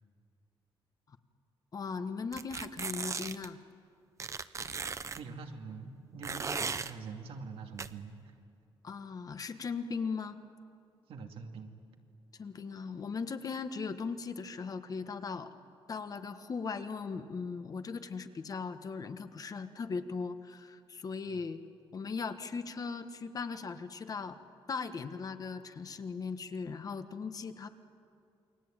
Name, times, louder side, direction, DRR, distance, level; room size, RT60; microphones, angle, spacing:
voice 1, 1.7-3.6 8.8-10.4 12.4-15.5 15.9-21.6 21.9-24.4 24.7-27.7, left 5 dB, 40° left, 9 dB, 1.5 m, -38 dB
sound 1, 2.3-3.5 4.2-5.2 6.2-6.9 7.8-7.9, right 5 dB, 35° right, 0.9 m, -37 dB
voice 2, 5.2-8.3 11.1-11.7 21.3-21.4, right 4 dB, 80° right, 4 dB, 2.5 m, -45 dB
28.5 x 22.5 x 9.0 m, 2.4 s
cardioid pair, 120°, 9 cm